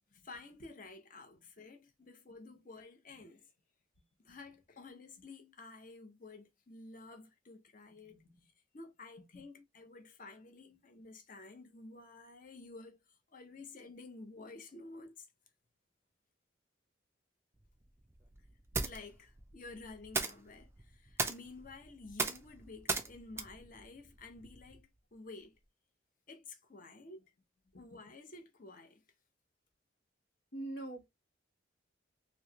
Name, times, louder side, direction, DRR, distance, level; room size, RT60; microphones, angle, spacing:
voice 1, 0.2-3.5 4.2-8.2 8.7-13.0 13.3-15.3 18.8-25.6 26.3-27.2 27.7-29.0, left 3 dB, 45° left, 0.7 m, -52 dB
voice 2, 8.0-8.4 9.3-9.4 30.5-31.1, right 2 dB, 80° left, 1.4 m, -44 dB
sound 1, 17.6-24.8, right 4 dB, 15° right, 0.4 m, -40 dB
3.1 x 2.8 x 2.8 m
head